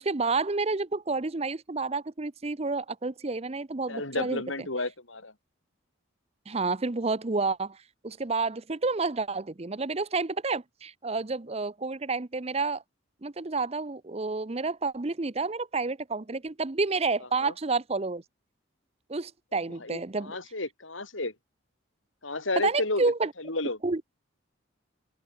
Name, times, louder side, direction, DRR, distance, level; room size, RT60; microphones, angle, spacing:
voice 1, 0.0-4.4 6.5-7.8 8.0-12.8 13.2-18.2 19.1-20.3 22.6-23.3 23.8-24.0, right 3 dB, 30° right, 0.7 m, -29 dB
voice 2, 3.9-5.3 17.4-17.5 19.8-21.3 22.2-23.1 23.4-23.8, left 2 dB, 80° left, 6.0 m, -32 dB
open air
head